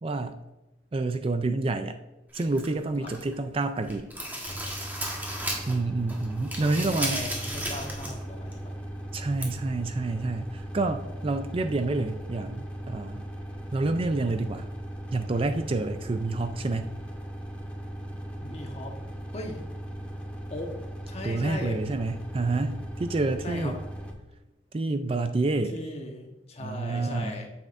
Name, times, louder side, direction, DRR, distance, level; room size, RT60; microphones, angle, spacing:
voice 1, 0.0-0.4 0.9-2.0 2.3-4.1 5.7-7.2 9.1-13.3 13.7-14.7 15.1-16.9 21.2-23.8 24.7-25.8 26.6-27.4, right 2 dB, 30° right, 9 dB, 0.4 m, -28 dB
sound 1, 2.3-3.4 3.8-5.8 6.1-8.2 8.5-8.6 9.4-9.5, right 1 dB, 10° right, 1.5 m, -34 dB
sound 2, 4.4-24.1, equal, 5° left, 0.9 m, -38 dB
voice 2, 6.6-8.7 18.4-19.0 19.3-19.6 20.5-20.7 21.1-21.9 23.4-23.8 25.7-27.5, left 1 dB, 35° left, 2 dB, 1.3 m, -38 dB
9.2 x 7.5 x 2.6 m, 1.0 s
head